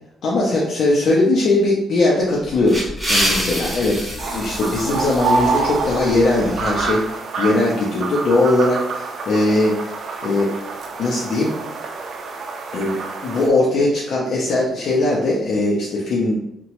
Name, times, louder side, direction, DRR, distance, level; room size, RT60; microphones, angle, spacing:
voice 1, 0.2-2.8 3.1-10.5 11.0-11.5 12.7-16.3, left 2 dB, 55° left, -4 dB, 0.4 m, -20 dB
sound 1, 2.4-6.9, equal, ahead, 0.7 m, -26 dB
sound 2, 4.2-13.5, right 4 dB, 50° right, 0.4 m, -27 dB
2.8 x 2.1 x 2.9 m, 0.83 s
cardioid pair, 175°, 0 cm